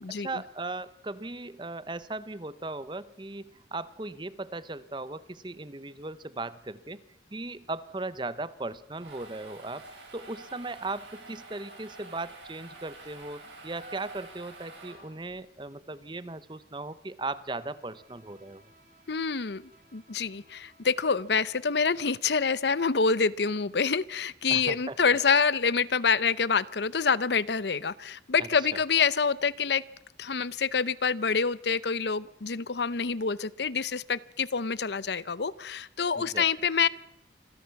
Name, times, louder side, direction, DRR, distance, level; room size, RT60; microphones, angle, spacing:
voice 1, 0.1-7.0 7.3-9.8 10.1-18.6 24.5-25.0 28.4-28.5 36.2-36.5, right 2 dB, 25° right, 16 dB, 0.8 m, -37 dB
sound 1, 9.0-15.4, right 2 dB, 85° right, 7.4 m, -48 dB
Bowed string instrument, 17.4-22.6, right 1 dB, 45° right, 6.2 m, -63 dB
voice 2, 19.1-19.6 19.9-29.8 30.2-36.9, left 5 dB, 70° left, 19 dB, 0.7 m, -26 dB
26.5 x 15.0 x 7.1 m, 0.80 s
head